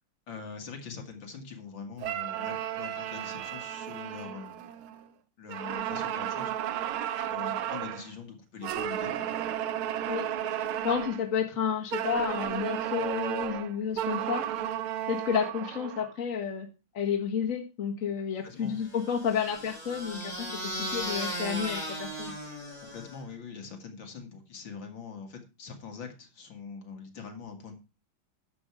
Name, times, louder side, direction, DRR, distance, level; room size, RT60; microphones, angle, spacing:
voice 1, 0.3-4.7 5.4-6.5 7.3-9.3 18.4-18.8 22.8-27.7, left 5 dB, 65° left, 4 dB, 2.6 m, -43 dB
sound 1, 2.0-5.1 5.5-8.1 8.6-11.3 11.9-16.1, right 11 dB, 85° right, 1.7 m, -33 dB
voice 2, 10.8-14.4 15.1-16.7 16.9-20.5 20.9-22.3, left 7 dB, 40° left, 2 dB, 1.8 m, -31 dB
sound 2, 18.8-23.3, equal, 20° left, 6.5 m, -37 dB
11.5 x 7.2 x 4.8 m, 0.30 s
omnidirectional pair, 2.3 m